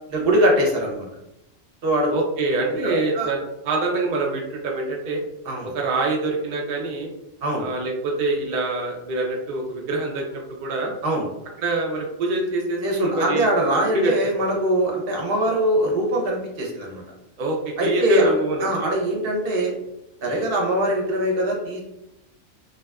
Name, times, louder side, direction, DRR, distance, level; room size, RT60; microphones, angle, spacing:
voice 1, 0.1-1.1 1.8-2.1 2.8-3.3 5.5-5.7 7.4-7.7 11.0-11.3 12.8-17.0 17.8-18.3 18.6-19.7 20.2-21.8, right 1 dB, 55° right, -1 dB, 0.7 m, -22 dB
voice 2, 2.1-5.2 5.6-7.1 7.6-10.9 11.6-13.5 13.9-14.3 17.4-18.8 20.2-20.4, right 2 dB, 80° right, 0 dB, 0.4 m, -25 dB
2.6 x 2.3 x 2.2 m, 0.88 s
omnidirectional pair, 1.3 m